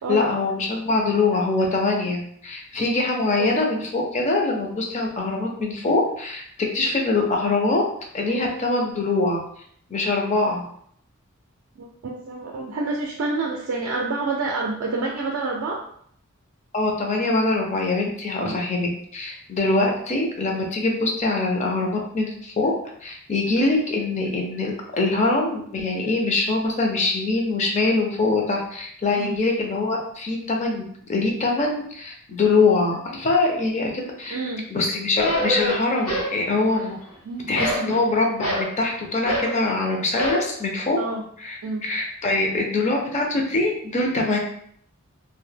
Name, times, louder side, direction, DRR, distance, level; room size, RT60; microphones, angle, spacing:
voice 1, 0.1-6.4 6.7-7.8 8.1-9.4 9.9-10.6 16.7-22.7 23.0-34.4 34.7-37.0 37.5-41.0 41.4-44.4, left 3 dB, 35° left, 1 dB, 0.5 m, -23 dB
voice 2, 11.8-15.8 18.4-18.7 29.2-29.3 34.3-34.7 37.2-37.5 37.8-38.0 41.0-41.2 41.6-41.8, right 3 dB, 65° right, -2 dB, 0.4 m, -28 dB
sound 1, 35.2-36.4 36.6-37.2 37.5-38.7 39.2-39.6 40.1-40.5, left 1 dB, 80° left, 0.8 m, -25 dB
2.1 x 2.0 x 3.3 m, 0.65 s
head